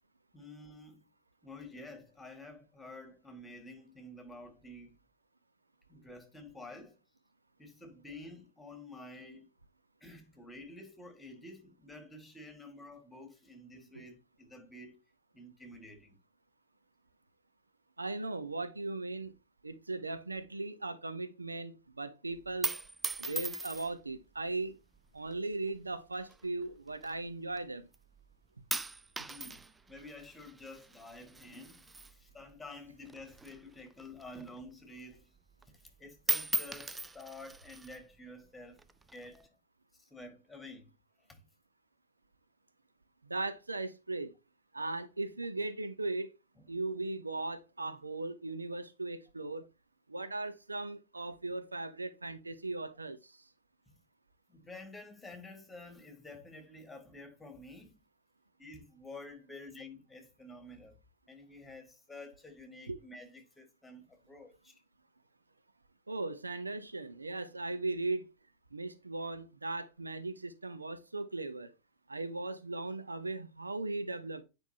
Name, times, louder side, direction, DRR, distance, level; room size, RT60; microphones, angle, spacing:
voice 1, 0.3-1.1 1.4-5.0 5.9-7.0 7.6-9.5 10.0-15.0 15.3-16.2 29.3-35.4 35.7-38.8 39.1-39.6 39.9-40.9 41.2-41.5 46.6-46.7 53.9-54.0 54.5-58.0 58.6-60.9 61.3-64.8, left 2 dB, 10° left, 2.1 m, -50 dB
voice 2, 18.0-19.3 19.6-22.7 23.2-24.8 25.1-27.9 43.2-44.3 44.7-46.3 46.7-49.6 50.1-53.5 62.9-63.0 66.1-68.2 68.7-71.7 72.1-74.4, right 2 dB, 80° right, 0.7 m, -38 dB
sound 1, 22.4-24.1 24.9-25.4 26.2-27.6 27.9-28.3 28.7-32.8 33.0-34.7 35.1-35.2 35.5-35.9 36.2-38.0 38.8-39.4, right 3 dB, 10° right, 0.3 m, -38 dB
9.4 x 5.2 x 2.9 m
figure-of-eight pair, 90°, 0 cm